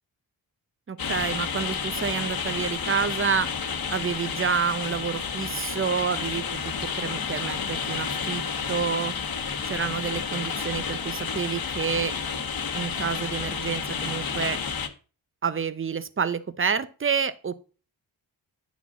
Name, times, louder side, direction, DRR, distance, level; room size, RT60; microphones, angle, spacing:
voice 1, 0.9-3.5 3.9-8.4 8.7-9.1 9.6-12.1 12.7-14.6 15.4-17.5, right 6 dB, 25° right, 14 dB, 0.8 m, -28 dB
sound 1, 1.0-14.9, left 6 dB, 45° left, 1.2 m, -31 dB
9.4 x 3.6 x 5.9 m, 0.36 s
supercardioid pair, 50°, 47 cm